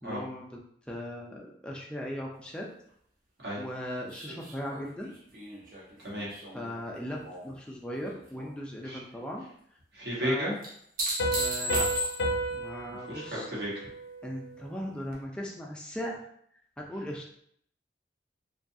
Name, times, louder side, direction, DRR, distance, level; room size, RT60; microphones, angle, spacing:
voice 1, 0.0-0.6 0.9-2.7 3.6-5.1 6.5-9.4 10.2-10.5 11.3-11.9 12.5-13.5 14.2-16.2 16.8-17.3, equal, 5° left, -2 dB, 0.4 m, -38 dB
sound 1, 4.1-7.6 7.9-8.5 10.6-12.5 15.1-15.2, right 1 dB, 50° right, 0.6 m, -35 dB
voice 2, 9.9-10.6 13.0-13.9, equal, 70° right, -6 dB, 1.0 m, -33 dB
Piano, 11.2-14.6, right 1 dB, 80° left, 0.5 m, -33 dB
2.6 x 2.3 x 2.6 m, 0.67 s
head